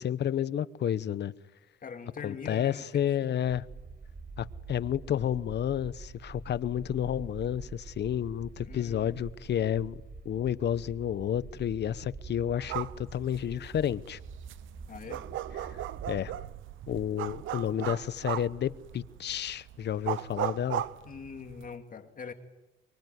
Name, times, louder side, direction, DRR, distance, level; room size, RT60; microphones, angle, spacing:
voice 1, 0.0-1.3 2.2-3.6 4.4-10.0 10.2-14.2 15.7-15.8 16.1-16.3 16.9-20.8, left 10 dB, 60° left, 1.0 m, -31 dB
voice 2, 1.8-3.4 8.6-9.2 14.9-15.3 21.1-22.3, left 5 dB, 45° left, 2.6 m, -43 dB
sound 1, 3.4-16.2, right 4 dB, 45° right, 5.9 m, -46 dB
sound 2, 12.6-21.7, right 12 dB, 80° right, 1.0 m, -38 dB
24.5 x 24.0 x 9.5 m
cardioid pair, 90°, 20 cm